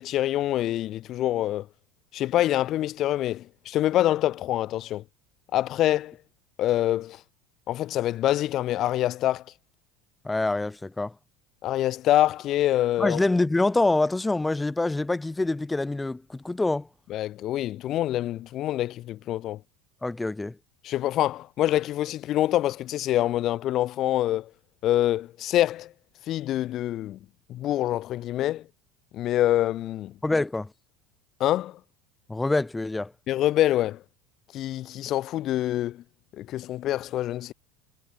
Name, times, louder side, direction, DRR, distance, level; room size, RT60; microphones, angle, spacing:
voice 1, 0.0-1.7 2.1-5.0 5.5-6.2 6.6-7.2 7.7-9.4 11.6-13.2 17.1-19.6 20.8-24.5 24.8-25.9 26.3-27.2 27.5-28.6 29.1-30.1 31.4-31.8 33.3-34.0 34.5-36.0 36.3-37.5, left 13 dB, 50° left, 0.4 m, -25 dB
voice 2, 10.2-11.1 13.0-16.9 20.0-20.6 30.2-30.7 32.3-33.1, left 2 dB, 10° left, 0.6 m, -25 dB
hypercardioid pair, 75°, 0 cm